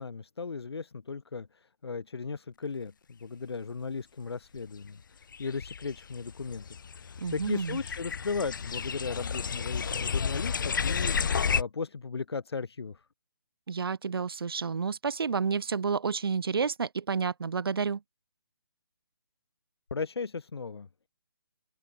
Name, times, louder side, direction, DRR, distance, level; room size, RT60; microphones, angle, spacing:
voice 1, 0.0-13.1 19.9-20.9, left 4 dB, 80° left, 2.5 m, -36 dB
sound 1, 4.6-4.7 5.3-11.6, left 6 dB, 50° left, 3.6 m, -32 dB
voice 2, 7.2-7.8 13.7-18.0, right 5 dB, 65° right, 1.9 m, -30 dB
open air
hypercardioid pair, 170°, 13 cm